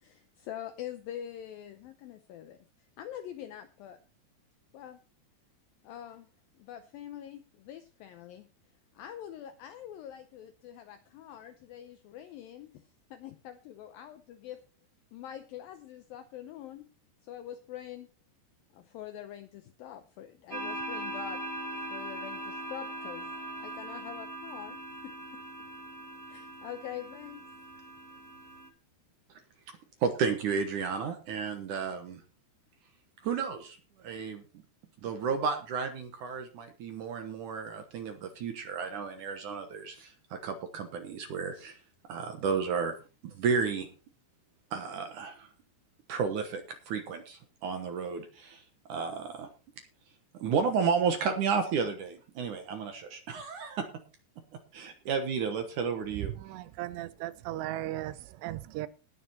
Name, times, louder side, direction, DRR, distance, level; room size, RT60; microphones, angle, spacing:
voice 1, 0.0-2.7 3.0-4.0 4.7-5.0 5.8-6.3 6.5-8.5 8.9-12.8 13.1-14.6 15.1-16.9 17.2-18.1 18.7-21.4 21.9-23.3 23.6-25.4 26.3-27.5, left 11 dB, 80° left, 2.1 m, -44 dB
sound 1, 20.5-28.7, right 1 dB, 30° right, 1.5 m, -40 dB
voice 2, 30.0-32.2 33.2-34.4 35.0-41.8 42.1-42.9 43.2-43.9 44.7-45.5 46.1-48.6 48.9-49.5 50.4-53.9 54.7-56.3, right 6 dB, 65° right, 2.1 m, -32 dB
voice 3, 56.4-58.9, right 15 dB, 80° right, 2.7 m, -37 dB
19.0 x 6.6 x 4.2 m
omnidirectional pair, 5.0 m